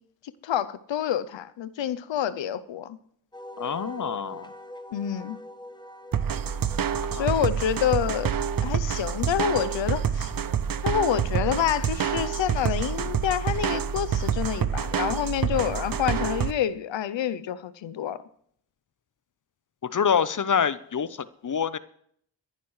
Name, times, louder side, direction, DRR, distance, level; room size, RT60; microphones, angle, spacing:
voice 1, 0.4-3.0 4.9-5.4 7.1-8.3 8.6-10.3 10.8-18.2, left 10 dB, 90° left, 0.6 m, -27 dB
Wind instrument woodwind instrument, 3.3-8.1, left 1 dB, 10° left, 1.2 m, -44 dB
voice 2, 3.6-4.5 7.2-7.3 19.8-21.8, left 7 dB, 45° left, 0.7 m, -26 dB
sound 1, 6.1-16.5, right 8 dB, 50° right, 0.7 m, -27 dB
27.0 x 11.0 x 3.2 m
cardioid pair, 45°, 44 cm